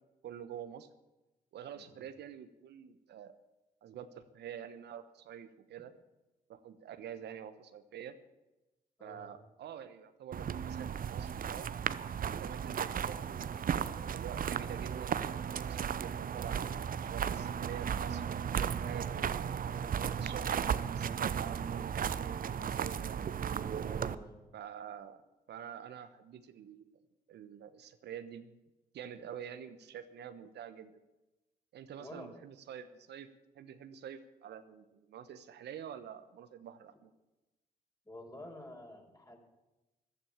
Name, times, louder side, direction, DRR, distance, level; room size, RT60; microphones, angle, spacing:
voice 1, 0.2-0.9 1.5-3.3 3.8-5.9 6.5-8.2 9.0-11.7 12.2-13.5 13.8-19.6 20.0-23.3 24.5-25.2 25.5-26.9 27.3-28.5 28.9-30.9 31.7-33.3 33.5-37.1, right 9 dB, 65° right, 11 dB, 1.0 m, -47 dB
voice 2, 1.7-2.1 9.0-9.4 17.5-17.9 23.8-24.4 32.0-32.4 38.0-39.4, left 1 dB, 20° left, 3 dB, 4.6 m, -50 dB
sound 1, 10.3-24.1, right 8 dB, 50° right, 0.8 m, -35 dB
14.5 x 12.0 x 7.2 m, 1.0 s
hypercardioid pair, 45°, 19 cm